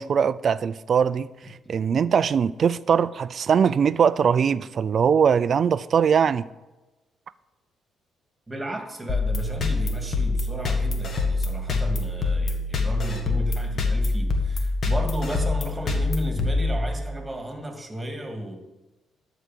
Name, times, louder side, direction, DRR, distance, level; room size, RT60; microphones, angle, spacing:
voice 1, 0.0-1.3 1.7-6.5, right 7 dB, 50° right, 0.4 m, -21 dB
voice 2, 1.4-1.8 8.5-18.6, right 1 dB, 15° right, 2.2 m, -34 dB
sound 1, 9.1-17.3, left 3 dB, 55° left, 1.6 m, -25 dB
11.5 x 5.0 x 7.5 m
cardioid pair, 90°, 0 cm